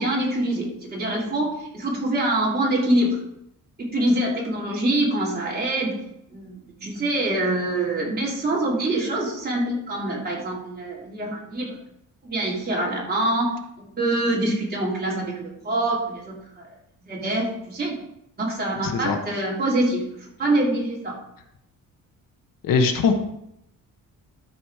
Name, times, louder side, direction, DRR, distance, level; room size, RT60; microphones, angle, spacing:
voice 1, 0.0-3.2 3.8-6.0 6.3-11.7 12.2-13.5 13.8-16.7 17.0-18.0 18.4-21.1, right 1 dB, 30° right, -5 dB, 3.9 m, -25 dB
voice 2, 18.8-19.2 22.6-23.1, left 5 dB, 75° left, 6 dB, 1.3 m, -21 dB
13.0 x 5.0 x 5.0 m, 0.79 s
cardioid pair, 135°, 34 cm